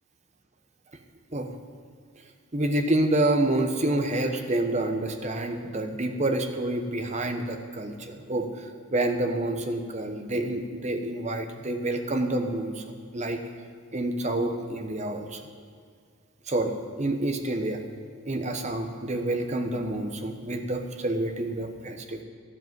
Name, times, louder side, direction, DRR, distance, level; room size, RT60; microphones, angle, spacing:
voice 1, 2.5-13.4 13.9-15.4 16.5-17.8 18.3-22.2, right 1 dB, 30° right, 5 dB, 1.0 m, -28 dB
12.5 x 7.8 x 9.3 m, 2.1 s
head